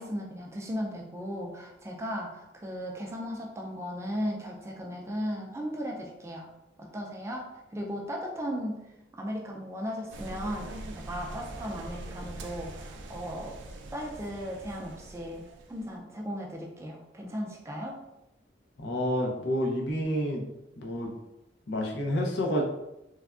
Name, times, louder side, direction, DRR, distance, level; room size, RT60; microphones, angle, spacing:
voice 1, 0.0-6.5 6.8-8.9 9.1-13.6 13.9-18.0, equal, 15° right, -1 dB, 0.3 m, -36 dB
sound 1, 10.1-15.9, right 2 dB, 90° right, 0.4 m, -42 dB
voice 2, 18.8-20.4 20.8-21.1 21.7-22.6, equal, 75° left, 0 dB, 0.6 m, -29 dB
3.3 x 2.2 x 2.4 m, 0.90 s
head